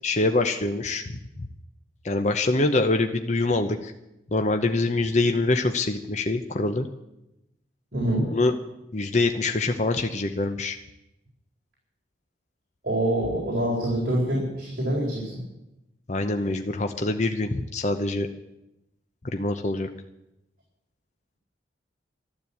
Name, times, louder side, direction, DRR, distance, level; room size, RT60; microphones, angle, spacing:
voice 1, 0.0-1.2 2.0-3.9 4.3-6.9 8.3-8.5 8.9-10.8 16.1-18.3 19.3-19.9, left 2 dB, 40° left, 6 dB, 0.8 m, -24 dB
voice 2, 7.9-8.3 12.8-15.3, right 1 dB, 50° right, -4 dB, 4.4 m, -25 dB
12.5 x 12.5 x 8.4 m, 0.90 s
head